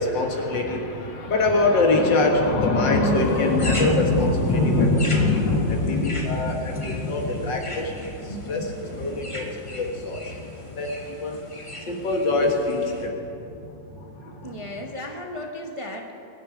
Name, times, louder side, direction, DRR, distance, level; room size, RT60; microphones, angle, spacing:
voice 1, 0.0-11.4 11.9-13.2 14.0-14.6, left 2 dB, 75° left, 1 dB, 2.5 m, -23 dB
sound 1, 3.1-13.1, left 1 dB, 20° left, 1.4 m, -39 dB
voice 2, 14.4-16.1, left 1 dB, 20° right, 0 dB, 0.9 m, -35 dB
23.0 x 10.5 x 5.1 m, 2.7 s
omnidirectional pair, 2.0 m